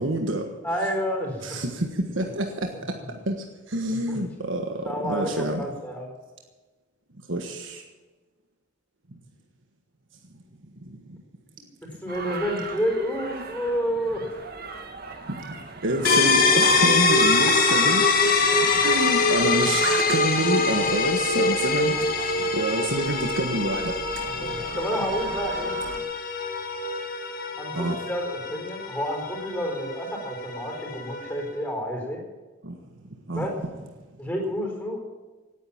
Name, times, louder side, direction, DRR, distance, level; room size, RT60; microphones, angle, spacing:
voice 1, 0.0-0.5 1.4-3.0 3.3-5.7 7.3-7.8 10.9-11.0 15.8-24.0 27.7-28.0 32.6-32.8 33.3-33.5, right 1 dB, 75° right, 4 dB, 1.5 m, -27 dB
voice 2, 0.6-1.6 2.2-2.3 2.7-2.8 4.1-4.2 4.8-6.1 11.6-11.7 12.0-14.4 20.6-20.7 24.4-25.8 27.6-32.2 33.3-33.6 34.2-35.0, equal, 5° left, 1 dB, 4.4 m, -30 dB
sound 1, 12.1-26.0, right 4 dB, 50° right, 1.9 m, -36 dB
sound 2, 16.1-31.6, left 4 dB, 45° left, 1.8 m, -24 dB
18.0 x 9.6 x 7.3 m, 1.3 s
head